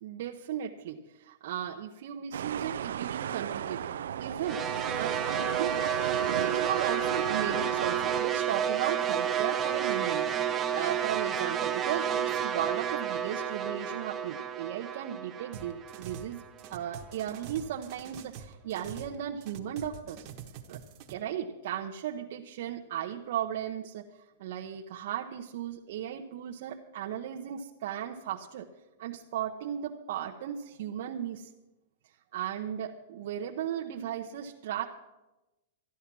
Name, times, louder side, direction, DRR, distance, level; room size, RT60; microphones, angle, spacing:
voice 1, 0.0-3.9 4.2-4.6 4.9-5.2 5.6-10.3 10.7-16.4 16.7-20.3 20.7-20.8 21.1-28.7 29.0-31.5 32.3-34.9, right 10 dB, 60° right, 0 dB, 0.8 m, -36 dB
sound 1, 2.3-8.2, right 9 dB, 80° right, 0.5 m, -35 dB
sound 2, 4.5-16.7, right 8 dB, 20° right, 0.7 m, -31 dB
sound 3, 15.5-16.3 16.6-19.2 19.4-21.1, right 8 dB, 35° right, 1.2 m, -45 dB
13.0 x 10.5 x 6.1 m, 1.0 s
hypercardioid pair, 150°, 0 cm